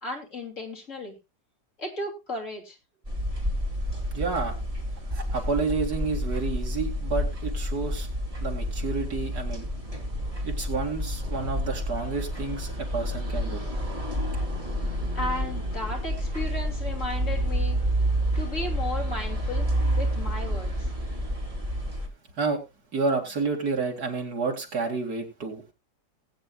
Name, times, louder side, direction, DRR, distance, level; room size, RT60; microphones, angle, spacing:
voice 1, 0.0-1.2 1.8-2.8 15.1-17.8 18.3-19.7 20.0-20.7, left 2 dB, 50° left, 1 dB, 3.2 m, -34 dB
sound 1, 3.1-22.1, equal, 20° right, 2.6 m, -29 dB
voice 2, 4.1-4.5 5.1-8.1 8.4-9.7 10.4-13.6 22.4-22.6 22.9-25.7, right 4 dB, 70° right, 2 dB, 2.8 m, -30 dB
20.0 x 9.0 x 2.3 m, 0.24 s
omnidirectional pair, 1.7 m